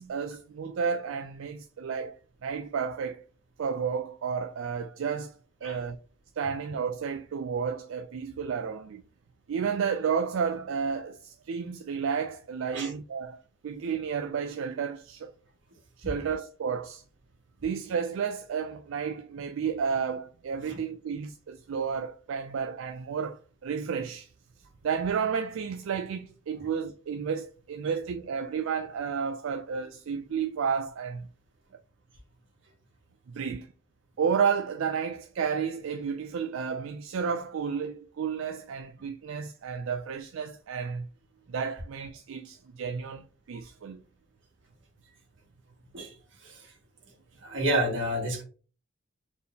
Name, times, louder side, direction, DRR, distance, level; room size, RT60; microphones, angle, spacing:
voice 1, 0.0-2.2 2.4-3.2 3.6-6.0 6.4-9.0 9.5-15.3 16.0-17.0 17.6-24.3 24.8-31.3 33.3-33.7 34.2-41.1 41.5-44.0, right 6 dB, 80° right, 0.4 m, -32 dB
voice 2, 46.4-46.7 47.4-48.4, right 1 dB, 65° right, 1.8 m, -30 dB
4.1 x 3.5 x 2.8 m
head